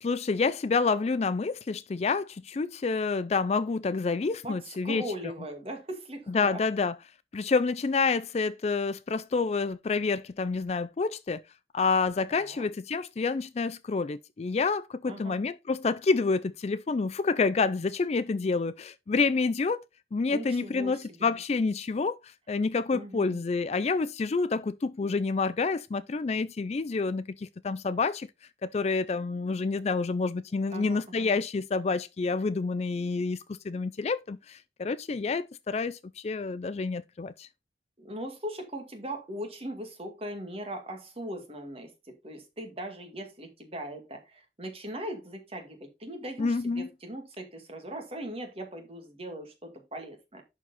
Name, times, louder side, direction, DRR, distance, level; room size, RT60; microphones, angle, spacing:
voice 1, 0.0-5.0 6.3-7.0 7.3-11.4 11.7-19.8 20.1-28.3 28.6-37.5 46.4-46.9, left 4 dB, 35° left, 0.4 m, -28 dB
voice 2, 4.4-6.6 12.3-12.7 15.1-15.4 20.3-21.4 22.9-23.4 30.7-31.3 38.0-41.9 42.2-50.4, right 1 dB, 30° right, 2.1 m, -39 dB
11.0 x 4.6 x 4.1 m
head